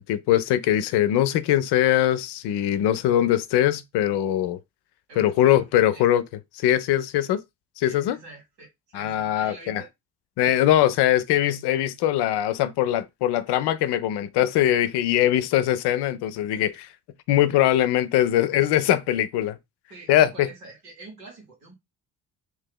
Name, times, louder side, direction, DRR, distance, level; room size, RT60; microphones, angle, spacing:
voice 1, 0.0-4.6 5.2-6.2 6.5-7.4 7.8-8.2 8.9-9.8 10.4-16.9 17.3-19.6 20.1-20.5, left 12 dB, 60° left, 0.6 m, -22 dB
voice 2, 5.1-5.7 5.9-6.1 7.8-9.9 19.9-21.7, right 3 dB, 85° right, 1.7 m, -46 dB
3.1 x 2.8 x 3.7 m
hypercardioid pair, 45°, 45 cm